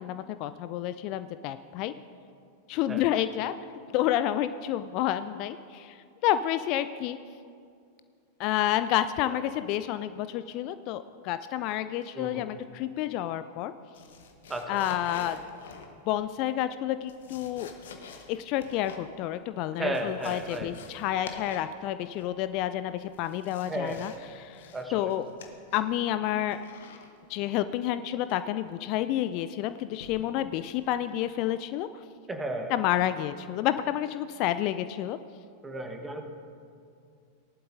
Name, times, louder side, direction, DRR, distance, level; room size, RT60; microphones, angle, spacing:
voice 1, 0.0-1.9 2.7-3.5 3.9-6.0 6.2-7.2 8.4-13.7 14.7-15.4 16.1-17.7 18.3-25.3 25.7-26.6 27.3-31.9 32.7-35.2, left 12 dB, 40° left, 12 dB, 0.3 m, -29 dB
voice 2, 12.1-12.5 14.5-14.9 19.8-20.7 23.7-24.0 24.7-25.2 32.3-32.7 35.6-36.2, right 1 dB, 10° right, 4 dB, 1.3 m, -34 dB
sound 1, 13.9-16.2 16.9-19.1 19.4-19.5 19.8-21.8 22.0-22.5 23.0-24.2 24.5-26.0 26.5-27.1 28.3-28.6 30.0-30.3 30.8-31.0, left 5 dB, 60° left, 1.1 m, -47 dB
18.0 x 11.5 x 2.7 m, 2.3 s
figure-of-eight pair, 90°, 0 cm